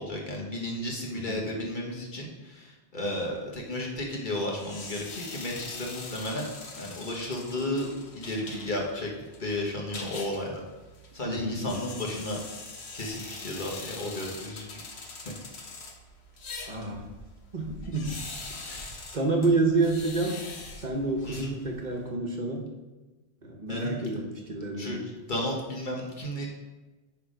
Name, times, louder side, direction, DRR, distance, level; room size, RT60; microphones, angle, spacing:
voice 1, 0.0-6.5 6.7-9.1 9.4-10.6 11.1-12.4 12.9-14.8 15.2-15.3 18.5-18.9 21.2-21.5 23.7-24.0 24.8-26.5, left 1 dB, 50° left, -1 dB, 1.6 m, -33 dB
sound 1, 4.5-22.0, left 3 dB, 85° left, 1.3 m, -43 dB
voice 2, 11.2-11.9 16.7-17.1 17.5-18.1 19.1-20.4 20.8-22.7 23.4-25.0, right 3 dB, 45° right, 0 dB, 1.1 m, -28 dB
9.4 x 3.5 x 5.1 m, 1.2 s
omnidirectional pair, 1.1 m